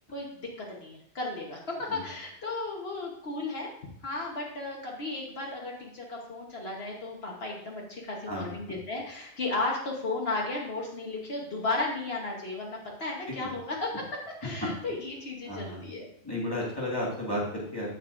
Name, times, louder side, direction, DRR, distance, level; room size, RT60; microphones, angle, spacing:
voice 1, 0.7-3.7 4.0-16.1, left 2 dB, 70° left, -2 dB, 1.5 m, -34 dB
voice 2, 15.5-15.8 16.2-18.0, left 1 dB, 20° left, -6 dB, 2.1 m, -33 dB
15.0 x 5.4 x 2.6 m, 0.74 s
omnidirectional pair, 1.1 m